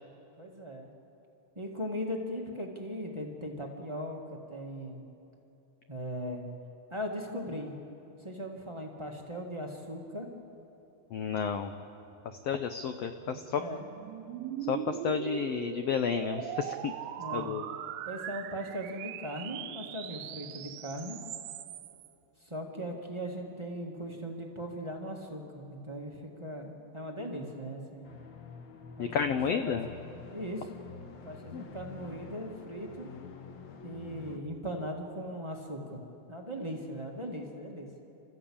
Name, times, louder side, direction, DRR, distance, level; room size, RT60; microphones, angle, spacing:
voice 1, 0.4-0.9 1.5-5.0 5.9-6.4 6.9-7.7 8.2-10.3 13.6-13.8 17.2-17.6 18.0-21.2 22.4-28.1 29.0-29.8 30.3-30.7 31.2-33.1 33.8-36.0 36.3-37.9, equal, 25° right, 0 dB, 0.6 m, -39 dB
voice 2, 11.1-11.7 12.4-13.6 14.7-16.9 17.3-17.6 29.0-29.9 31.5-31.6, left 7 dB, 85° left, 8 dB, 1.4 m, -31 dB
sound 1, 12.4-22.1, right 12 dB, 85° right, 2.4 m, -41 dB
sound 2, 28.0-34.4, left 5 dB, 55° left, 1.4 m, -47 dB
29.5 x 13.5 x 8.6 m, 3.0 s
omnidirectional pair, 3.8 m